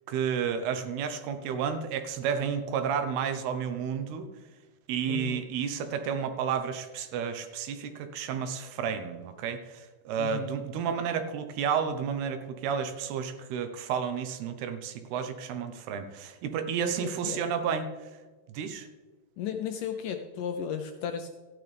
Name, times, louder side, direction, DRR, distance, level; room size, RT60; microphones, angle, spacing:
voice 1, 0.1-4.3 4.9-17.9 18.5-18.9, right 7 dB, 80° right, 8 dB, 2.8 m, -31 dB
voice 2, 5.1-5.5 10.2-10.6 16.8-17.4 19.4-21.3, left 7 dB, 80° left, 6 dB, 1.9 m, -35 dB
15.0 x 10.5 x 3.4 m, 1.3 s
omnidirectional pair, 4.7 m